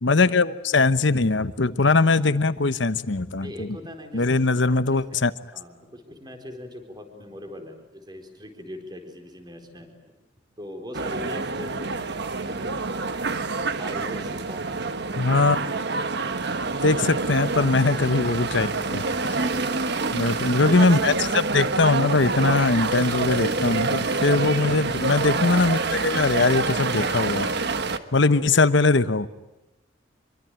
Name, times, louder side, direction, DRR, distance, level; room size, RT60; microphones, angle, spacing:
voice 1, 0.0-3.7 4.1-5.3 15.2-15.6 16.8-19.4 20.1-27.5 28.1-29.3, left 3 dB, 70° left, 13 dB, 1.0 m, -21 dB
voice 2, 3.4-10.1 10.6-12.9 13.8-14.8 17.0-17.1 19.4-20.6 24.1-24.4 28.2-28.5, left 1 dB, 25° right, 5 dB, 4.3 m, -41 dB
sound 1, 10.9-28.0, right 3 dB, 60° right, 1.4 m, -27 dB
26.5 x 23.5 x 9.1 m, 0.99 s
head